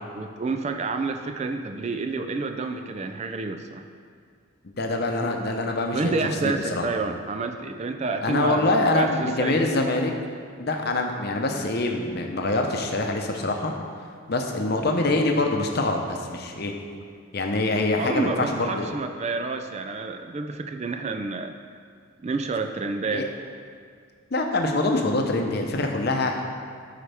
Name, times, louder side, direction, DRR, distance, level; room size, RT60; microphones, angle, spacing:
voice 1, 0.1-3.9 5.9-9.7 18.0-21.5 22.2-23.3, right 3 dB, 30° right, 6 dB, 0.3 m, -29 dB
voice 2, 4.6-6.9 8.2-10.1 10.6-13.7 14.3-16.7 17.3-18.9 23.1-23.3 24.3-26.4, left 2 dB, 50° left, 3 dB, 0.7 m, -25 dB
13.0 x 4.8 x 3.4 m, 2.2 s
head